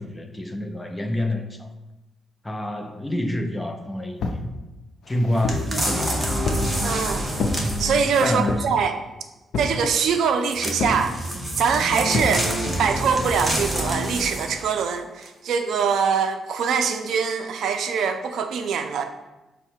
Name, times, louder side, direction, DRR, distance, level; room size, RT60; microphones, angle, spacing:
voice 1, 0.0-1.7 2.4-4.4 5.1-6.2 8.2-8.7, left 1 dB, 10° left, 0.4 m, -27 dB
sound 1, 4.2-4.5 5.0-5.7 6.4-6.7 7.4-7.6 8.5-8.8 9.5-9.8 10.8-11.1 12.1-12.4, left 3 dB, 70° left, 0.5 m, -27 dB
sound 2, 5.5-8.5 10.5-14.7 15.2-15.3, right 1 dB, 15° right, 0.9 m, -27 dB
voice 2, 6.8-7.3 7.8-8.9 9.6-11.2 11.6-12.5 12.8-19.0, right 6 dB, 75° right, 0.4 m, -23 dB
5.4 x 2.1 x 4.4 m
cardioid pair, 110°, 0 cm